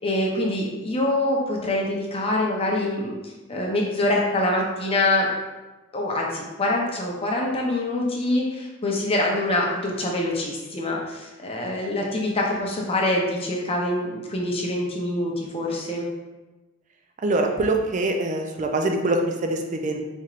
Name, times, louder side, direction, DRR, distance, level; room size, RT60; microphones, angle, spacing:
voice 1, 0.0-5.3 5.9-16.1, left 1 dB, 30° left, -2 dB, 0.7 m, -25 dB
voice 2, 17.2-20.0, right 2 dB, 40° right, 3 dB, 0.4 m, -24 dB
4.3 x 3.0 x 2.5 m, 1.1 s
head